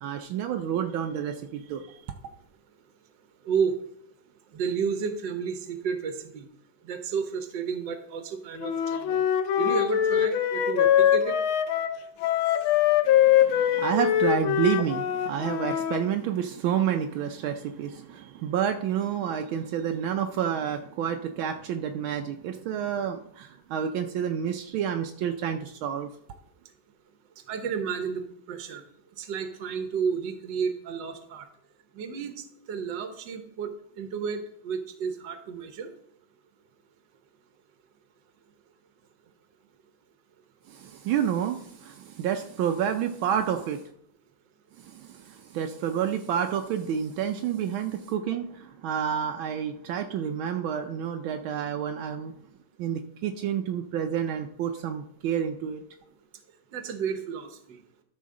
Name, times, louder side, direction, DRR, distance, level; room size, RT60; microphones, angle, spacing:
voice 1, 0.0-2.0 13.1-26.1 40.7-43.9 44.8-52.3 52.8-55.8, right 8 dB, 80° right, 1.5 m, -29 dB
voice 2, 4.5-6.5 6.8-9.2 9.6-11.3 27.5-28.2 28.5-28.8 29.2-31.4 31.9-32.3 32.7-35.9 56.7-57.8, right 6 dB, 65° right, 1.6 m, -31 dB
Wind instrument woodwind instrument, 8.6-16.0, left 11 dB, 80° left, 1.5 m, -23 dB
12.5 x 6.1 x 3.7 m
omnidirectional pair, 2.2 m